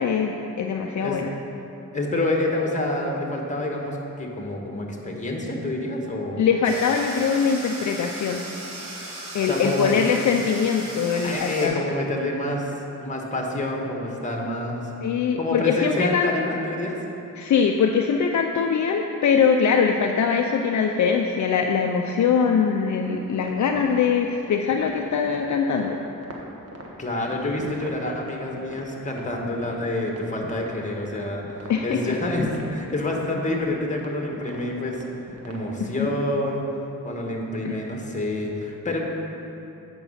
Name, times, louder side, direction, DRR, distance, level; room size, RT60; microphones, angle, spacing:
voice 1, 0.0-1.4 6.4-8.4 9.3-11.8 15.0-16.3 17.4-26.0 31.7-32.1 35.8-36.1 37.6-37.9, left 6 dB, 60° left, 3 dB, 0.6 m, -22 dB
voice 2, 1.9-6.4 9.5-9.9 11.2-12.7 13.0-14.9 15.4-17.0 27.0-35.0 35.4-36.6 37.0-39.0, left 1 dB, 20° left, 0 dB, 1.5 m, -27 dB
sound 1, 6.6-11.7, right 1 dB, 90° right, 2.2 m, -37 dB
sound 2, 23.0-35.8, right 1 dB, 45° right, 1.4 m, -42 dB
8.2 x 6.1 x 5.6 m, 2.9 s
cardioid pair, 75°, 33 cm